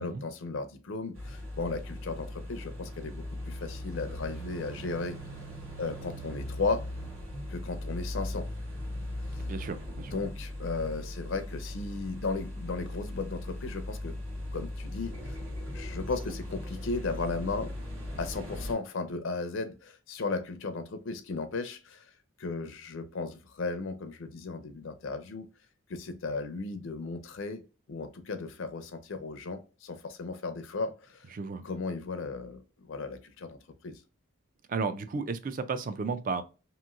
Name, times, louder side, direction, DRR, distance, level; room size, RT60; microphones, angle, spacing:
voice 1, 0.0-5.2 5.8-6.8 7.5-8.5 10.0-14.2 14.5-15.4 15.7-17.7 18.2-22.1 22.4-25.5 25.9-27.6 27.9-31.3 31.6-34.0, left 3 dB, 65° left, 0.5 m, -35 dB
sound 1, 1.1-18.7, left 1 dB, 80° right, 1.2 m, -39 dB
voice 2, 9.5-10.2 31.3-31.7 34.7-36.4, right 4 dB, 40° right, 0.3 m, -33 dB
2.9 x 2.6 x 2.4 m
head